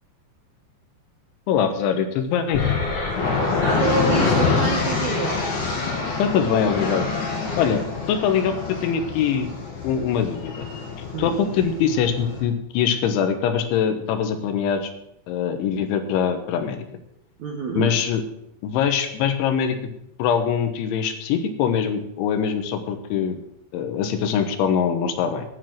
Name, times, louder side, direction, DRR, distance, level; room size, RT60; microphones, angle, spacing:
voice 1, 1.5-2.6 6.2-7.1 7.6-9.5 9.8-10.7 11.2-14.9 15.3-16.8 17.8-18.2 18.6-19.8 20.2-23.4 23.7-25.5, left 7 dB, 80° left, 8 dB, 3.5 m, -23 dB
sound 1, 2.5-12.4, left 4 dB, 55° left, 4.2 m, -25 dB
voice 2, 3.6-5.4 11.1-11.4 17.4-17.9, right 3 dB, 65° right, 1 dB, 1.8 m, -27 dB
10.0 x 8.9 x 7.7 m, 0.78 s
omnidirectional pair, 5.3 m